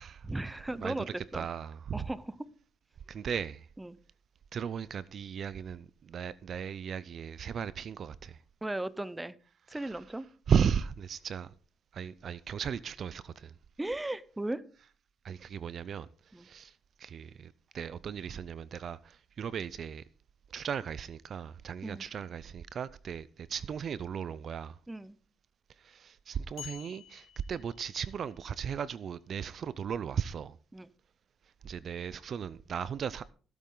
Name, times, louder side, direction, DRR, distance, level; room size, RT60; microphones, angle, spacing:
voice 1, 0.2-1.5 1.9-2.5 3.8-4.0 8.6-9.4 9.7-10.3 13.8-14.6 16.3-16.5 21.8-22.0 24.9-25.2 30.7-30.9, right 1 dB, 10° right, 0.7 m, -36 dB
voice 2, 1.3-2.0 3.1-3.7 4.5-8.4 9.8-9.9 10.5-11.5 11.9-13.5 15.2-16.1 16.4-16.7 17.0-20.0 20.5-24.8 25.8-30.6 31.6-33.3, right 7 dB, 55° right, 0.5 m, -36 dB
sound 1, 26.6-28.4, left 10 dB, 65° left, 2.4 m, -49 dB
15.5 x 8.5 x 3.9 m
cardioid pair, 90°, 0 cm